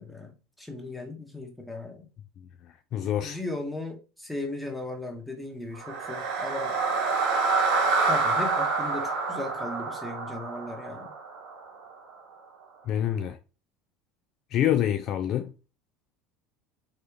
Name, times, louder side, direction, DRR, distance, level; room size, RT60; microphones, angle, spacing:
voice 1, 0.0-2.1 3.2-6.8 8.0-11.1, left 2 dB, 5° left, 1.3 m, -37 dB
voice 2, 2.6-3.4 12.9-13.4 14.5-15.5, left 11 dB, 45° left, 0.4 m, -27 dB
sound 1, 5.8-11.9, right 4 dB, 50° right, 1.0 m, -27 dB
4.0 x 3.1 x 3.5 m
figure-of-eight pair, 70°, 0 cm